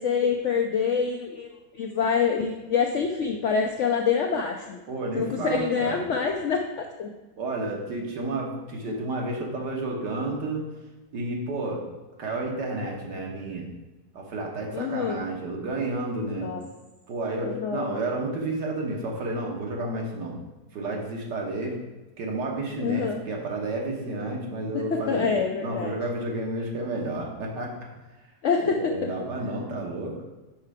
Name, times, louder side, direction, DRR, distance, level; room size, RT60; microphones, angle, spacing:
voice 1, 0.0-4.8 5.2-7.1 14.7-15.2 16.4-16.6 17.4-18.0 22.8-23.2 24.9-25.9 28.4-29.1, left 6 dB, 75° left, 3 dB, 0.6 m, -26 dB
voice 2, 4.9-6.0 7.4-10.6 11.1-11.8 12.2-13.7 14.1-16.5 17.1-20.4 20.7-21.7 22.2-25.3 25.6-27.7 28.6-30.2, right 2 dB, 80° right, -1 dB, 1.9 m, -31 dB
5.7 x 5.6 x 4.9 m, 1.1 s
omnidirectional pair, 1.8 m